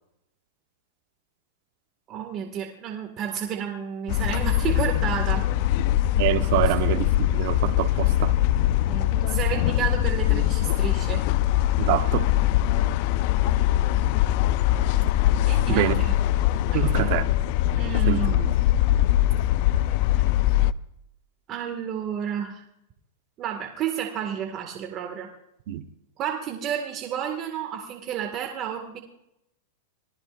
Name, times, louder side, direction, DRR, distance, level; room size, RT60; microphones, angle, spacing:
voice 1, 2.1-5.4 8.9-11.2 15.5-16.1 16.7-17.1 17.7-18.4 21.5-22.6 23.4-25.3 26.2-29.0, right 9 dB, 35° right, 2.0 m, -31 dB
sound 1, 4.1-20.7, left 13 dB, 50° left, 0.5 m, -22 dB
voice 2, 6.1-8.4 11.8-12.3 15.7-16.0 16.7-17.3 18.1-18.5 25.7-25.8, right 14 dB, 55° right, 1.1 m, -26 dB
26.5 x 19.0 x 2.6 m
supercardioid pair, 140°, 0 cm